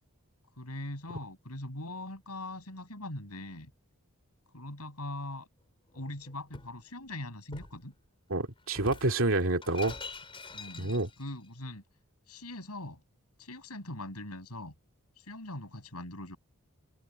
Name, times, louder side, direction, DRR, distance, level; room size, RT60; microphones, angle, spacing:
voice 1, 0.6-3.7 4.5-5.5 5.9-7.9 10.5-11.8 12.3-13.0 13.4-14.7 15.2-16.4, left 1 dB, 85° left, 7.6 m, -41 dB
Shatter, 5.9-6.8 7.5-7.8 8.7-11.3, left 3 dB, 25° left, 4.5 m, -45 dB
voice 2, 8.3-10.0 10.8-11.1, right 2 dB, 60° right, 2.7 m, -28 dB
head